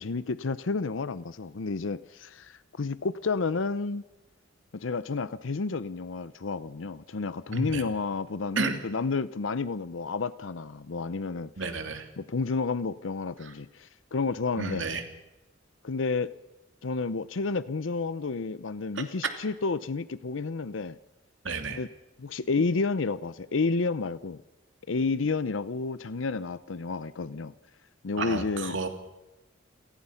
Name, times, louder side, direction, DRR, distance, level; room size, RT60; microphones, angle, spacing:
voice 1, 0.0-4.0 4.7-11.5 12.2-14.8 15.8-16.3 16.8-21.0 21.7-21.9 22.2-24.4 24.9-27.5 28.0-28.8, left 4 dB, 90° left, 16 dB, 0.7 m, -30 dB
voice 2, 7.5-7.8 8.6-8.8 11.6-12.1 13.4-13.5 14.6-15.0 18.9-19.0 21.4-21.8 28.2-28.9, right 3 dB, 75° right, 6 dB, 2.7 m, -32 dB
29.0 x 18.5 x 5.7 m, 1.0 s
head